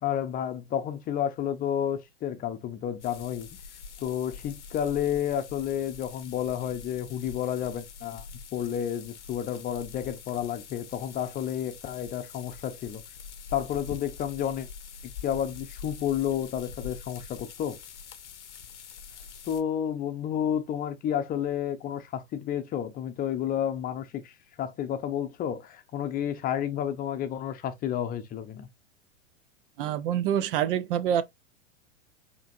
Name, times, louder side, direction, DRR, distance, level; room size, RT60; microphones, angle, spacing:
voice 1, 0.0-3.5 4.0-8.3 8.5-13.0 13.5-14.7 15.2-17.8 19.5-28.7, left 9 dB, 25° left, 0.7 m, -31 dB
sound 1, 3.0-19.6, left 6 dB, 75° left, 0.8 m, -45 dB
voice 2, 29.8-31.2, right 10 dB, 50° right, 0.5 m, -26 dB
4.9 x 2.9 x 2.5 m
figure-of-eight pair, 95°, 35 cm